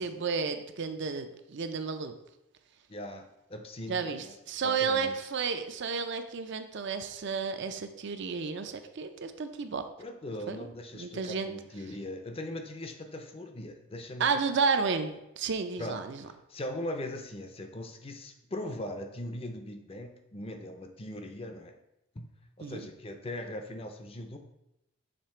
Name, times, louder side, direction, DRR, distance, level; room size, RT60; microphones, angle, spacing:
voice 1, 0.0-2.2 3.9-9.8 10.5-10.6 10.9-11.5 14.2-16.2 22.6-22.8, right 5 dB, 55° right, 8 dB, 0.5 m, -32 dB
voice 2, 2.9-4.3 4.6-5.2 10.0-14.6 15.8-16.0 16.5-21.8 22.2-22.3 22.6-24.4, left 1 dB, 25° left, 6 dB, 0.5 m, -40 dB
6.7 x 3.3 x 4.3 m, 0.87 s
head